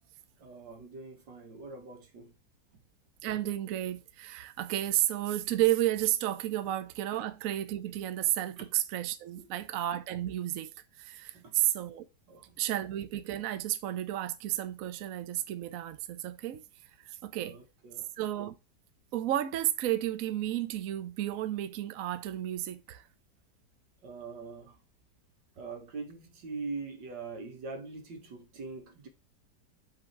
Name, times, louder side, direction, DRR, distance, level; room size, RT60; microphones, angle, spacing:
voice 1, 0.4-2.3 8.6-8.7 9.4-9.5 11.3-11.5 12.3-12.6 17.4-18.1 24.0-24.8 25.6-29.1, right 4 dB, 85° right, 2.1 m, -43 dB
voice 2, 3.2-10.7 11.0-12.1 12.6-16.6 17.0-17.6 18.2-18.5 19.1-23.0, right 13 dB, 65° right, 0.9 m, -32 dB
5.9 x 3.9 x 5.9 m
omnidirectional pair, 1.9 m